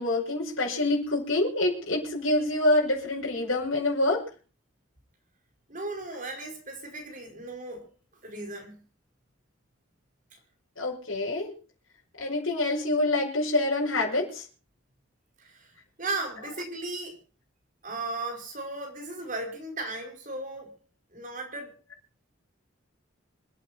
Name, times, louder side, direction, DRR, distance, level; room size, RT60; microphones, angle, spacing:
voice 1, 0.0-4.2 10.8-11.5 12.2-14.4, left 2 dB, 75° left, 5.5 m, -26 dB
voice 2, 5.7-7.9 8.2-8.8 15.4-17.2 17.8-20.8 21.1-21.7, right 2 dB, 40° right, 4.9 m, -36 dB
26.5 x 9.3 x 4.3 m
head